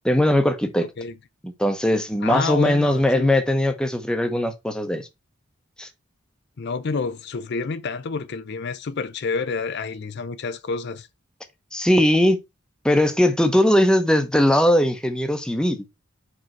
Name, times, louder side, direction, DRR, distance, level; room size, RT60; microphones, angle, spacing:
voice 1, 0.0-0.9 1.4-5.1 5.8-5.9 11.7-12.4 12.8-15.8, left 1 dB, 5° left, 0.9 m, -20 dB
voice 2, 2.2-3.3 6.6-11.1, left 4 dB, 55° left, 0.5 m, -28 dB
5.4 x 5.1 x 4.5 m
head